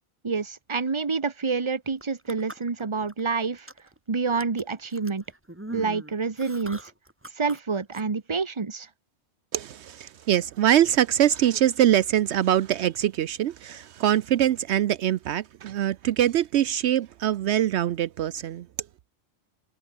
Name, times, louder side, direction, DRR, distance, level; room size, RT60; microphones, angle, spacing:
voice 1, 0.2-3.7 4.1-5.2 5.7-6.9 7.3-8.9, right 4 dB, 25° right, 1.1 m, -28 dB
sound 1, 1.9-3.2 3.5-4.0 4.4-7.6 7.9-8.0, right 1 dB, 10° right, 1.8 m, -41 dB
voice 2, 9.5-18.7, right 11 dB, 75° right, 0.9 m, -23 dB
omnidirectional pair, 1.2 m